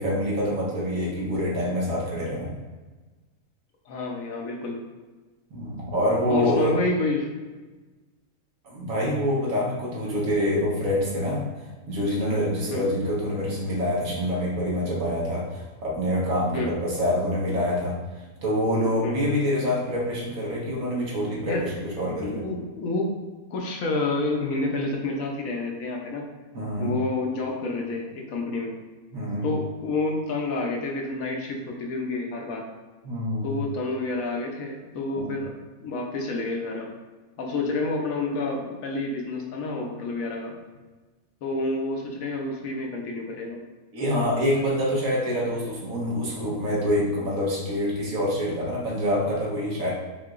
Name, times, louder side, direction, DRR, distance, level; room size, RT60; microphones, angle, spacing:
voice 1, 0.0-2.5 5.5-6.8 8.6-11.4 11.9-18.0 18.4-22.4 26.5-26.9 29.1-29.5 33.0-33.6 35.1-35.3 43.9-49.9, equal, 80° right, -5 dB, 1.6 m, -26 dB
voice 2, 3.9-4.8 6.3-7.3 12.7-12.8 16.5-16.7 19.0-19.2 21.5-21.6 22.1-23.1 23.5-26.2 26.8-28.7 29.4-32.7 33.4-35.5 35.8-36.9 37.4-40.5 41.4-43.6, left 2 dB, 75° left, 0 dB, 1.2 m, -29 dB
5.6 x 2.8 x 2.5 m, 1.3 s
omnidirectional pair, 1.5 m